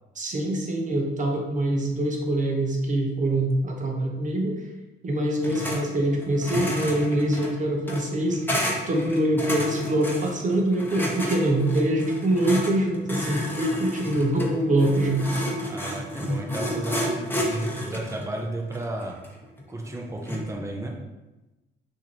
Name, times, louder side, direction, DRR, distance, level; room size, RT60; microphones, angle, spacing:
voice 1, 0.2-4.6 5.0-8.5 8.9-15.3, right 1 dB, 40° right, 1 dB, 1.0 m, -24 dB
sound 1, 5.4-5.8 6.1-20.5, equal, 10° left, 0.9 m, -31 dB
voice 2, 15.7-19.2 19.7-20.9, right 1 dB, 15° right, 0 dB, 0.7 m, -33 dB
5.7 x 2.8 x 2.9 m, 1.1 s
cardioid pair, 90°, 20 cm